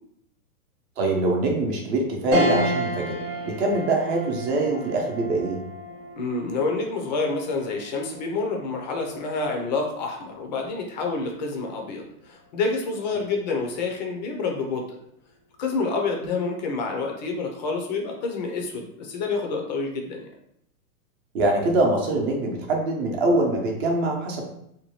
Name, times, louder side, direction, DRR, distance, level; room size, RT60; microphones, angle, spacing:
voice 1, 1.0-3.2 3.4-5.6 21.3-24.4, right 2 dB, 40° right, 1 dB, 0.8 m, -24 dB
sound 1, 2.3-11.9 12.4-12.5 13.8-14.3, right 1 dB, 85° right, 1.1 m, -32 dB
voice 2, 6.2-15.0 15.6-20.3, left 3 dB, 30° left, 2 dB, 0.4 m, -28 dB
2.7 x 2.2 x 3.0 m, 0.74 s
hypercardioid pair, 135°, 46 cm